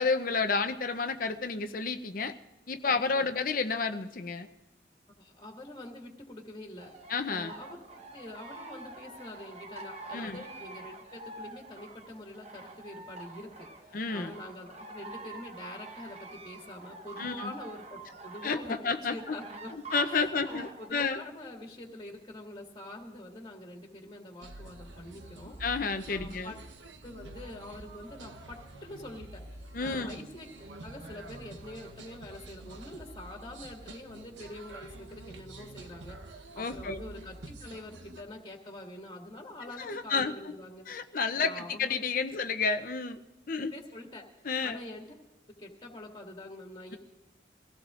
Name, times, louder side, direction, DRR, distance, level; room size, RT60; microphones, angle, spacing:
voice 1, 0.0-2.3 2.7-4.5 7.1-7.5 10.1-10.4 13.9-14.3 17.2-17.5 18.4-19.4 19.9-21.2 25.6-26.5 29.7-30.1 36.6-37.0 39.8-40.3 40.9-43.2 43.5-43.7 44.4-44.8, left 4 dB, 50° left, 8 dB, 0.6 m, -30 dB
voice 2, 2.8-3.3 5.2-6.9 7.3-7.8 8.1-19.7 20.0-25.6 26.1-26.6 27.0-30.5 30.8-40.9 41.4-42.0 43.7-44.2 44.6-45.2 45.6-47.0, left 1 dB, 25° left, 0 dB, 1.9 m, -45 dB
sound 1, 6.8-20.9, right 3 dB, 35° right, 0.9 m, -47 dB
sound 2, 24.4-38.2, right 2 dB, 90° right, 1.0 m, -47 dB
23.5 x 16.5 x 2.5 m, 1.0 s
head